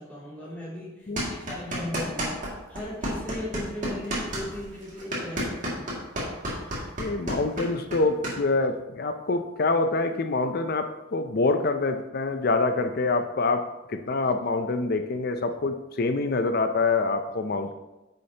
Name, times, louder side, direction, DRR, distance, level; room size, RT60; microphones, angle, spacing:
voice 1, 0.0-5.8, left 1 dB, 10° left, -9 dB, 2.7 m, -37 dB
voice 2, 1.1-1.4 7.0-17.7, left 3 dB, 45° left, 8 dB, 0.4 m, -26 dB
sound 1, 1.2-2.5 2.8-8.4, equal, 40° right, 2.2 m, -30 dB
9.7 x 6.4 x 2.9 m, 1.0 s
head